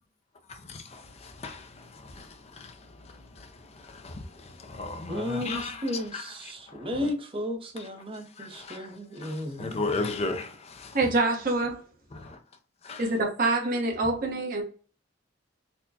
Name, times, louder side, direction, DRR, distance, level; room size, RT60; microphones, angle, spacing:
voice 1, 0.7-1.7 2.0-2.3 2.6-2.7 3.9-4.2 4.6-5.8 6.1-6.2 8.4-8.8 9.2-10.9 12.9-13.0, left 3 dB, 35° left, 0.5 m, -34 dB
voice 2, 5.1-10.3, left 1 dB, 30° right, 0.7 m, -34 dB
voice 3, 10.9-11.8 13.0-14.6, right 2 dB, 50° right, 1.0 m, -26 dB
4.2 x 2.2 x 2.7 m
head